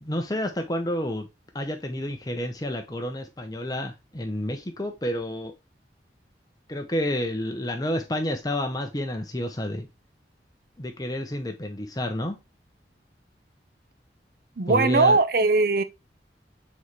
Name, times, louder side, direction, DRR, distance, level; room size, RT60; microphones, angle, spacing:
voice 1, 0.0-1.3 1.5-5.5 6.7-9.9 10.8-12.4 14.7-15.2, left 1 dB, 20° left, 0.8 m, -29 dB
voice 2, 14.6-15.8, right 3 dB, 55° right, 0.6 m, -20 dB
7.1 x 4.2 x 3.1 m
head